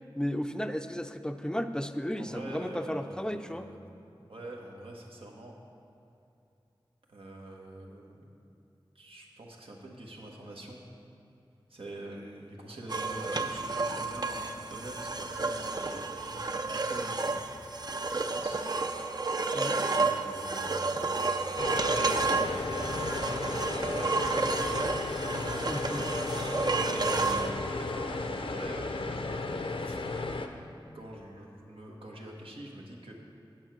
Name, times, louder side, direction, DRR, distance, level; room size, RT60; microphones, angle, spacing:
voice 1, 0.2-3.7 19.5-19.8 25.7-26.1 26.4-26.5, equal, 10° left, 8 dB, 0.5 m, -34 dB
voice 2, 2.2-5.6 7.1-8.2 8.9-10.8 11.7-17.4 17.8-18.6 18.9-19.1 19.7-24.7 25.0-26.6 26.8-30.0 30.9-33.1, right 1 dB, 85° right, -1 dB, 1.4 m, -45 dB
sound 1, 12.9-27.5, right 3 dB, 50° right, 0.6 m, -31 dB
sound 2, 21.6-30.5, left 3 dB, 75° left, 0.6 m, -34 dB
9.0 x 7.9 x 6.1 m, 2.7 s
wide cardioid pair, 65°, 9 cm